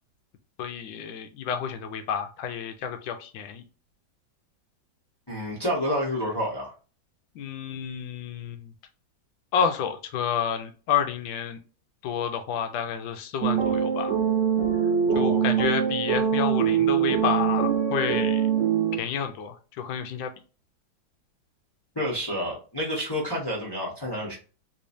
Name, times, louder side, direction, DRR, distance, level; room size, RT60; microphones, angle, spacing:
voice 1, 0.6-3.6 7.4-8.7 9.5-11.6 12.0-14.2 15.1-18.4 19.0-20.3, left 7 dB, 75° left, 8 dB, 1.3 m, -29 dB
voice 2, 5.3-6.7 15.1-15.5 21.9-24.3, equal, 15° left, -4 dB, 0.9 m, -29 dB
sound 1, 13.4-19.0, right 8 dB, 65° right, 1.4 m, -23 dB
3.4 x 3.1 x 2.6 m, 0.36 s
omnidirectional pair, 2.2 m